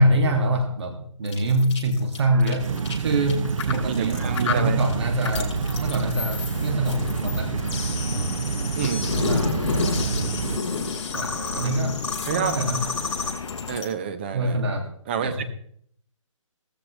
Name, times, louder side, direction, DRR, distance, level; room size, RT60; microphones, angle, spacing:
voice 1, 0.0-2.7 3.0-3.5 3.7-5.5 5.8-7.5 8.1-8.3 9.2-9.5 9.7-10.2 11.1-12.0 12.3-12.8 14.3-14.9 15.2-15.4, right 1 dB, 55° right, 4 dB, 2.3 m, -24 dB
sound 1, 1.2-13.9, left 4 dB, 55° left, 7.3 m, -30 dB
sound 2, 2.6-10.6, right 6 dB, 75° right, 0.6 m, -28 dB
voice 2, 3.7-4.8 8.7-9.4 11.3-11.8 12.3-12.6 13.7-14.6 15.1-15.4, right 7 dB, 20° right, 10 dB, 0.7 m, -29 dB
sound 3, 6.5-13.8, left 6 dB, 75° left, 0.8 m, -36 dB
17.0 x 14.5 x 3.2 m, 0.65 s
hypercardioid pair, 165°, 17 cm